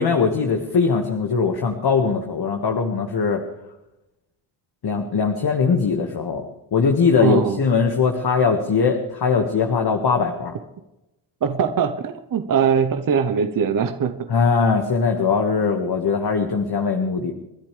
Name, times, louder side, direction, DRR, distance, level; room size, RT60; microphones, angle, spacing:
voice 1, 0.0-3.4 4.8-6.4 6.7-10.5 14.3-17.3, left 5 dB, 50° left, 3 dB, 1.8 m, -20 dB
voice 2, 7.2-7.6 11.4-14.1, right 7 dB, 40° right, 8 dB, 1.0 m, -21 dB
29.5 x 10.5 x 3.4 m, 0.93 s
supercardioid pair, 65°, 50 cm